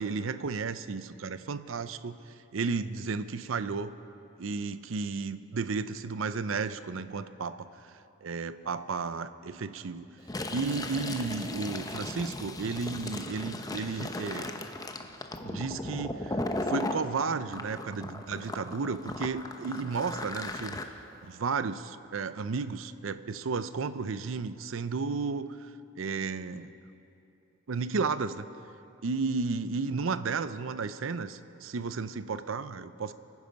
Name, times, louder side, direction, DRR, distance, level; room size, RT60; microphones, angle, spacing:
voice 1, 0.0-2.2 2.5-3.9 4.4-7.9 8.2-10.1 10.5-14.5 15.4-16.4 16.7-20.8 21.2-25.6 26.0-26.7 27.7-28.5 29.0-33.1, right 4 dB, 75° right, 13 dB, 0.6 m, -33 dB
Fill (with liquid), 10.2-17.0 17.5-20.8, left 2 dB, 20° left, 0.7 m, -36 dB
25.0 x 9.7 x 5.2 m, 2.8 s
head